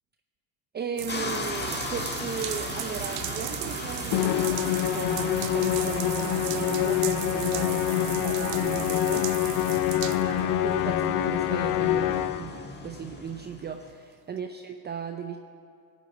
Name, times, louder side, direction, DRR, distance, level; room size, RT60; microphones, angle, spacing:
voice 1, 0.7-9.3 10.1-15.4, right 6 dB, 20° right, 6 dB, 0.7 m, -36 dB
sound 1, 1.0-10.9 11.4-11.5 12.1-12.3, right 16 dB, 80° right, 0.7 m, -36 dB
sound 2, 1.1-13.9, left 2 dB, 20° left, 1.7 m, -38 dB
Musical instrument, 4.1-12.6, left 13 dB, 40° left, 0.6 m, -26 dB
16.5 x 8.2 x 9.0 m, 2.3 s
hypercardioid pair, 90°, 48 cm